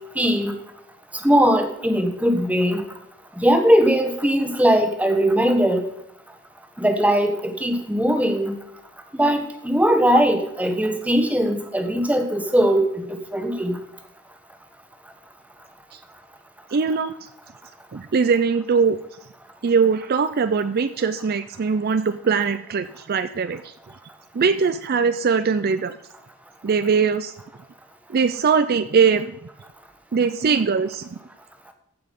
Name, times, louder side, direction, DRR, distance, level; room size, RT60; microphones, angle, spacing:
voice 1, 0.2-0.5 1.2-2.8 3.4-5.8 6.8-8.6 9.1-12.8 13.3-13.8, equal, 5° right, 5 dB, 1.1 m, -19 dB
voice 2, 16.7-17.1 17.9-19.0 19.6-23.7 24.3-25.9 26.6-27.3 28.1-29.3 30.1-31.2, right 5 dB, 45° right, 11 dB, 0.4 m, -21 dB
14.5 x 6.0 x 5.3 m, 0.80 s
head